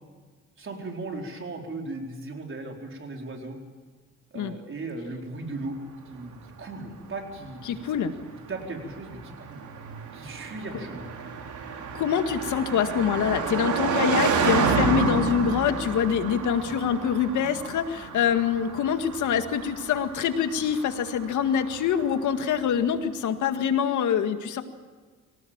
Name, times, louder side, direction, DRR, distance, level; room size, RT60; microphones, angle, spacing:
voice 1, 0.6-3.6 4.3-5.8 6.1-7.8 8.5-9.7 10.1-11.0, right 2 dB, 40° right, 2 dB, 4.5 m, -37 dB
Car passing by, 6.2-22.6, right 5 dB, 75° right, 4.4 m, -31 dB
voice 2, 7.7-8.2 11.9-24.6, left 8 dB, 75° left, 8 dB, 2.0 m, -25 dB
24.5 x 18.5 x 8.9 m, 1.5 s
cardioid pair, 90°, 30 cm